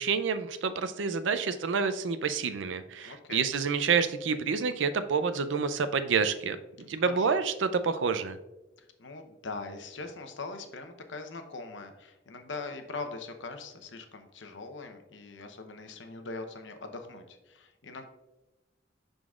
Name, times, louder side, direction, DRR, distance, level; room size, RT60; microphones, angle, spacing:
voice 1, 0.0-6.6 6.9-8.4, right 5 dB, 85° right, 11 dB, 0.5 m, -28 dB
voice 2, 3.0-3.5 6.8-7.4 8.8-18.0, left 3 dB, 80° left, 6 dB, 0.8 m, -42 dB
11.0 x 3.9 x 2.4 m, 1.0 s
head